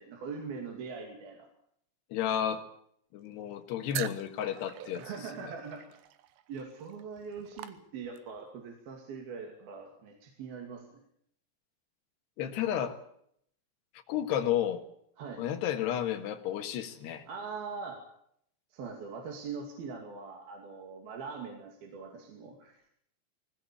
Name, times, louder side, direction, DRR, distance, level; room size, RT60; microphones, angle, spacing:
voice 1, 0.0-1.5 5.0-5.8 6.5-11.0 15.2-15.4 17.3-18.0 18.7-22.9, right 5 dB, 60° right, 2 dB, 4.1 m, -42 dB
voice 2, 2.1-2.6 3.1-5.1 5.4-5.5 12.4-13.0 14.1-14.8 15.4-17.3, left 10 dB, 70° left, 8 dB, 3.4 m, -32 dB
sound 1, 3.9-8.4, right 12 dB, 75° right, 3.0 m, -44 dB
20.5 x 17.5 x 8.5 m, 0.70 s
omnidirectional pair, 5.3 m